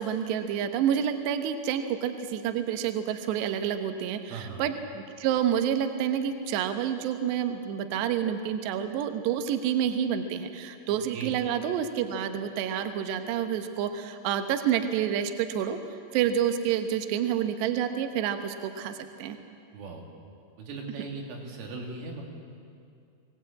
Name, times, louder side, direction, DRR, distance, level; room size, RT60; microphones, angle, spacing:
voice 1, 0.0-15.8 16.1-19.4, right 9 dB, 75° right, 8 dB, 3.0 m, -28 dB
voice 2, 4.3-4.6 11.1-11.4 19.7-20.1 20.6-22.2, right 4 dB, 90° right, 1 dB, 5.2 m, -38 dB
23.0 x 18.5 x 8.6 m, 2.4 s
omnidirectional pair, 5.5 m